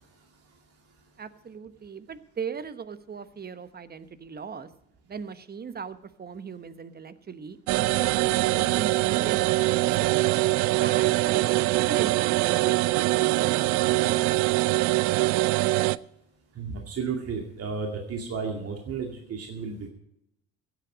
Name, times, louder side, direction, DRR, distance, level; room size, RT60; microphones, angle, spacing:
voice 1, 1.2-4.7 5.1-10.3 10.7-14.3, right 6 dB, 30° right, 13 dB, 1.1 m, -39 dB
sound 1, 7.7-16.0, right 19 dB, 60° right, 0.5 m, -23 dB
voice 2, 16.5-19.9, right 5 dB, 45° right, 2 dB, 2.3 m, -33 dB
16.5 x 8.2 x 5.1 m, 0.81 s
hypercardioid pair, 60°, 34 cm